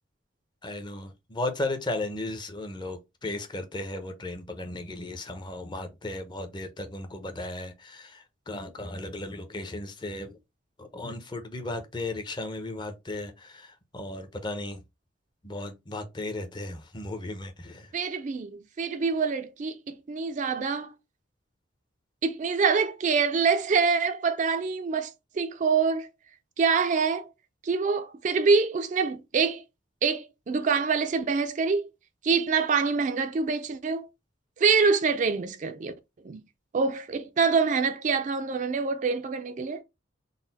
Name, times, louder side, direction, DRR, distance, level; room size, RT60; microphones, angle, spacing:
voice 1, 0.6-10.4 10.8-14.8 15.4-17.9, left 2 dB, 25° left, 0.6 m, -35 dB
voice 2, 17.9-20.9 22.2-25.1 25.4-26.1 26.6-27.3 27.6-29.6 30.0-31.9 32.2-34.1 34.6-35.9 36.2-36.4 36.7-39.8, right 5 dB, 40° right, 0.3 m, -25 dB
4.0 x 2.1 x 3.9 m
head